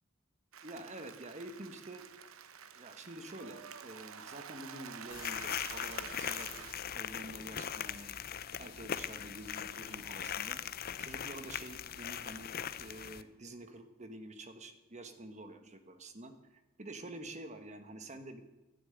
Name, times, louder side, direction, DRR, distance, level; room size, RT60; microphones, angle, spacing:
Applause, 0.5-6.7, right 7 dB, 80° right, 0.9 m, -49 dB
voice 1, 0.6-2.1 2.8-8.1 8.6-10.6 11.0-18.4, right 1 dB, 35° right, 8 dB, 1.3 m, -48 dB
sound 1, 5.1-13.2, left 9 dB, 45° left, 0.6 m, -40 dB
11.5 x 10.0 x 8.9 m, 1.0 s
head